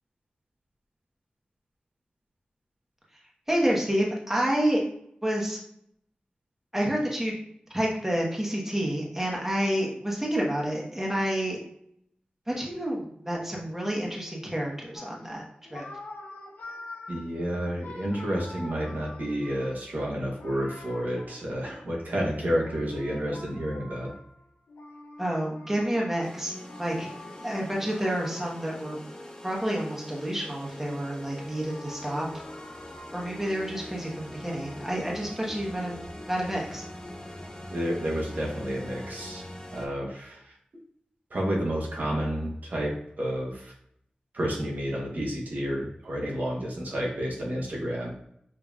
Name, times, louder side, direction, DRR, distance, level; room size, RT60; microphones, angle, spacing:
voice 1, 3.5-4.8 5.2-5.6 6.7-7.4 7.7-11.6 12.5-15.4 15.7-15.8 25.2-27.1 27.4-29.0 29.4-32.4 33.1-36.0 36.3-36.8, right 1 dB, 10° right, -2 dB, 1.1 m, -29 dB
sound 1, 14.9-21.9 22.5-28.9 29.3-30.5 30.9-33.3, left 2 dB, 85° left, 0.6 m, -46 dB
voice 2, 17.1-24.1 37.7-40.5 41.3-43.7 44.3-48.1, equal, 70° right, -3 dB, 1.0 m, -30 dB
sound 2, 26.2-39.9, left 1 dB, 20° left, 0.7 m, -43 dB
5.1 x 2.9 x 2.4 m, 0.71 s
wide cardioid pair, 55°, 3 cm